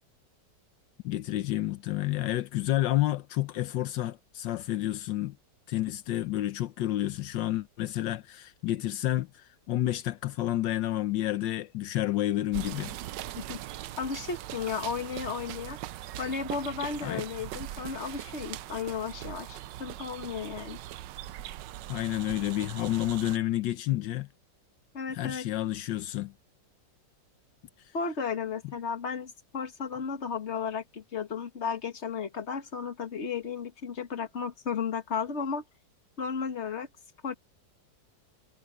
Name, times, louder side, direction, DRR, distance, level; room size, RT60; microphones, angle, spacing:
voice 1, 1.0-5.4 5.7-12.9 17.0-17.2 21.9-24.3 25.1-26.3, left 14 dB, 80° left, 1.4 m, -30 dB
sound 1, 12.5-23.4, right 13 dB, 80° right, 1.3 m, -41 dB
voice 2, 14.0-15.8 16.2-20.8 24.9-25.5 27.9-35.6 36.2-36.9 37.2-37.3, left 6 dB, 40° left, 1.9 m, -34 dB
omnidirectional pair, 1.9 m